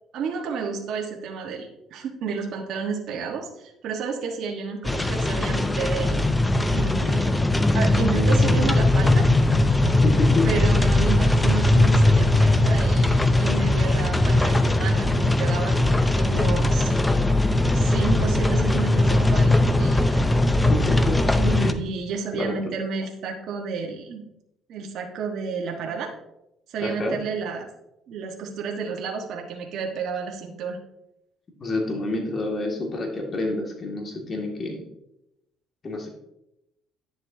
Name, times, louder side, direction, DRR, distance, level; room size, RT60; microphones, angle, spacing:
voice 1, 0.1-6.3 6.7-7.4 7.7-9.3 10.4-16.9 17.7-20.3 21.3-24.2 24.7-26.1 26.7-27.7 28.1-30.8, right 5 dB, 65° right, 0 dB, 1.3 m, -31 dB
sound 1, 4.8-21.7, left 2 dB, 10° left, 0.6 m, -20 dB
voice 2, 10.0-10.5 20.7-21.2 21.6-21.8 22.4-22.6 26.8-27.2 31.6-34.8 35.8-36.1, left 2 dB, 35° left, 1 dB, 2.0 m, -28 dB
10.5 x 7.2 x 2.7 m, 0.84 s
cardioid pair, 95°, 0 cm